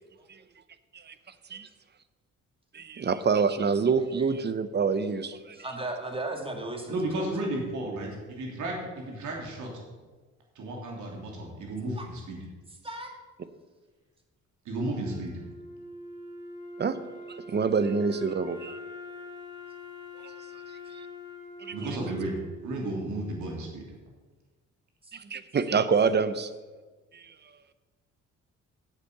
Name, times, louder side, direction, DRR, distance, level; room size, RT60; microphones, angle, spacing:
voice 1, 2.7-5.6 16.8-17.0 17.3-18.8 20.2-20.3 21.6-21.8 25.1-26.5 27.1-27.2, right 5 dB, 35° right, 13 dB, 0.8 m, -26 dB
voice 2, 5.5-7.3 12.0-12.1 12.8-13.1 25.0-25.2, right 2 dB, 20° right, 3 dB, 2.1 m, -36 dB
voice 3, 6.9-9.7 10.5-12.4 14.6-15.3 21.7-22.4 22.6-23.9, right 1 dB, 75° right, 0 dB, 3.2 m, -33 dB
Wind instrument woodwind instrument, 14.7-23.8, left 2 dB, 50° right, 3.4 m, -44 dB
8.3 x 8.2 x 6.8 m, 1.3 s
cardioid pair, 90°, 30 cm